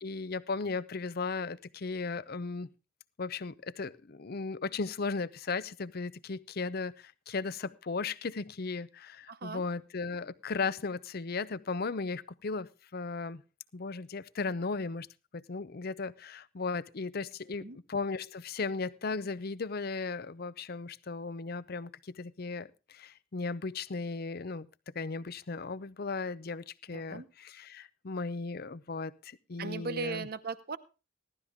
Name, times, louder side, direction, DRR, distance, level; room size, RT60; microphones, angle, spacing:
voice 1, 0.0-2.7 3.2-13.4 13.7-15.1 15.3-24.7 24.9-30.3, left 4 dB, 50° left, 0.6 m, -36 dB
voice 2, 9.3-9.6 17.6-17.8 26.9-27.3 29.6-30.8, right 3 dB, 50° right, 0.9 m, -38 dB
16.5 x 12.0 x 3.6 m
head